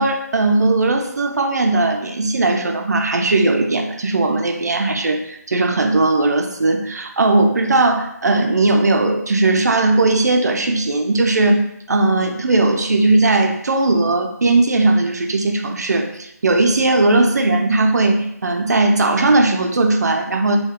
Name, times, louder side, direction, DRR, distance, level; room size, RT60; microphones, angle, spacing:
voice 1, 0.0-11.6 11.9-20.6, right 2 dB, 70° right, 4 dB, 0.4 m, -17 dB
2.9 x 2.2 x 2.3 m, 0.79 s
figure-of-eight pair, 155°, 9 cm